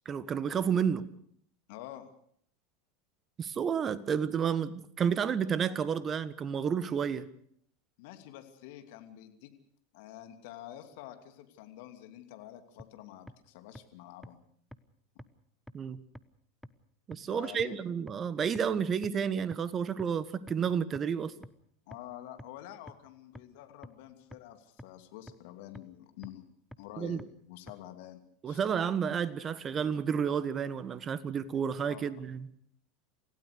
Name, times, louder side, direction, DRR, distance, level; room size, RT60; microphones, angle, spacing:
voice 1, 0.0-1.1 3.4-7.3 15.7-16.0 17.1-21.3 27.0-27.2 28.4-32.5, right 7 dB, 30° right, 1.5 m, -31 dB
voice 2, 1.7-2.1 8.0-9.5 9.9-14.4 15.1-15.2 17.3-17.8 21.9-26.5 26.8-28.2 28.5-28.6 31.9-32.1, left 13 dB, 65° left, 2.7 m, -48 dB
sound 1, 12.8-12.9 13.3-13.4 13.8-13.9 14.2-14.3 14.7-14.8 15.2-15.3 15.7-15.8 16.2-16.3 16.6-16.7 17.1-17.2 17.6-17.7 18.1-18.2 18.6-18.7 19.0-19.1 19.5-19.6 20.0-20.1 20.5-20.6 21.0-21.1 21.4-21.5 21.9-22.0 22.4-22.5 22.9-23.0 23.4-23.5 23.8-23.9 24.3-24.4 24.8-24.9 25.3-25.4 25.8-25.9 26.2-26.3 26.7-26.8 27.2-27.3 27.7-27.8, left 1 dB, 5° left, 1.1 m, -46 dB
27.5 x 16.0 x 6.7 m
hypercardioid pair, 90°, 0 cm